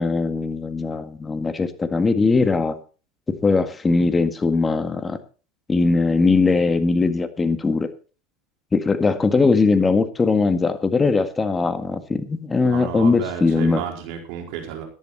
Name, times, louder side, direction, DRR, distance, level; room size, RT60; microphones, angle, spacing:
voice 1, 0.0-2.8 3.3-5.2 5.7-7.9 8.7-13.8, left 4 dB, 20° left, 10 dB, 1.8 m, -20 dB
voice 2, 12.6-14.8, right 8 dB, 65° right, 3 dB, 4.5 m, -32 dB
15.0 x 11.0 x 4.2 m, 0.36 s
hypercardioid pair, 95°, 0 cm